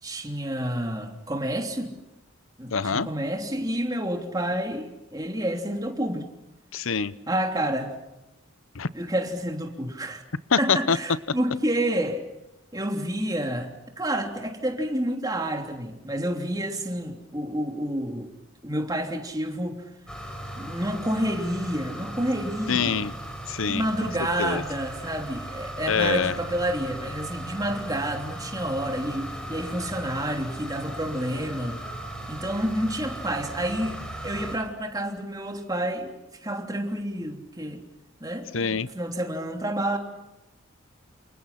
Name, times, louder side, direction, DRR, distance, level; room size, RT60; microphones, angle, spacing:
voice 1, 0.0-1.9 2.6-6.3 7.3-7.9 8.9-10.2 10.6-12.3 12.7-18.3 18.6-19.8 20.6-23.0 23.6-31.8 32.3-36.1 36.4-37.8 38.2-40.0, right 1 dB, 20° right, 3.2 m, -29 dB
voice 2, 2.7-3.1 6.7-7.1 8.7-8.9 10.5-11.0 22.7-23.1 23.5-23.8 24.4-24.6 25.9-26.3 38.5-38.9, left 6 dB, 85° left, 0.8 m, -24 dB
sound 1, 20.1-34.6, right 1 dB, 5° left, 5.6 m, -37 dB
29.0 x 28.5 x 5.9 m
head